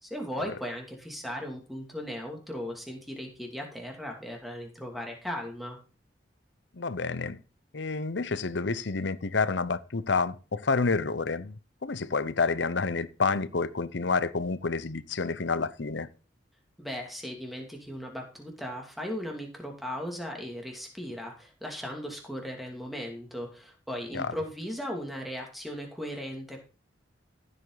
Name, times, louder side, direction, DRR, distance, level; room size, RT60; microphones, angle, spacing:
voice 1, 0.0-5.8 16.8-26.6, equal, ahead, 2.6 m, -37 dB
voice 2, 6.7-7.4 7.7-16.1 24.1-24.3, left 4 dB, 70° left, 0.8 m, -29 dB
14.5 x 7.9 x 4.0 m
head